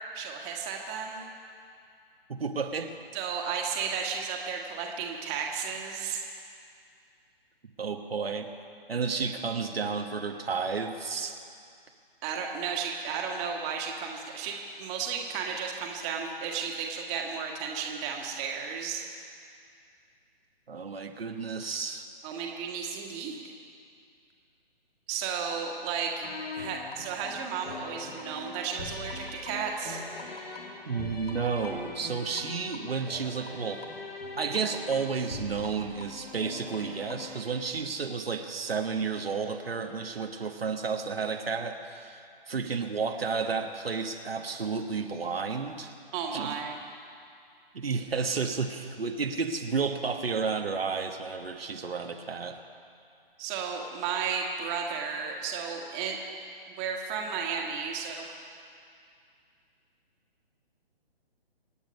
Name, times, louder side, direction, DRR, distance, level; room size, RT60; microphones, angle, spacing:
voice 1, 0.1-1.2 3.1-6.2 12.2-19.0 22.2-23.4 25.1-26.1 26.5-30.0 46.1-46.7 53.4-56.2 56.8-58.3, right 6 dB, 20° right, 0 dB, 1.7 m, -33 dB
voice 2, 2.3-2.9 7.8-8.5 8.9-11.4 20.7-22.1 30.9-33.8 34.4-45.9 46.3-46.6 47.7-52.6, right 5 dB, 75° right, 4 dB, 1.3 m, -32 dB
sound 1, 26.2-37.7, left 3 dB, 80° left, 2.1 m, -41 dB
26.0 x 8.9 x 5.3 m, 2.4 s
figure-of-eight pair, 140°, 30 cm